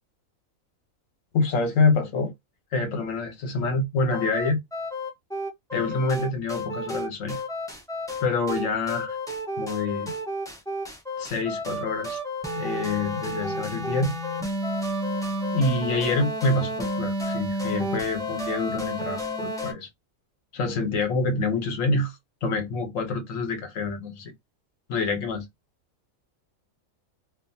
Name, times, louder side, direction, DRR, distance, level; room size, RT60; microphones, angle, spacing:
voice 1, 1.3-2.3 2.7-4.6 5.7-7.4 8.2-9.2 9.6-10.1 11.2-12.2 12.6-14.1 15.5-19.9 20.5-22.1 22.4-24.3 24.9-25.5, left 3 dB, 70° left, 1.2 m, -26 dB
sound 1, 4.1-19.7, left 1 dB, 5° left, 0.3 m, -31 dB
2.5 x 2.4 x 2.6 m
omnidirectional pair, 1.4 m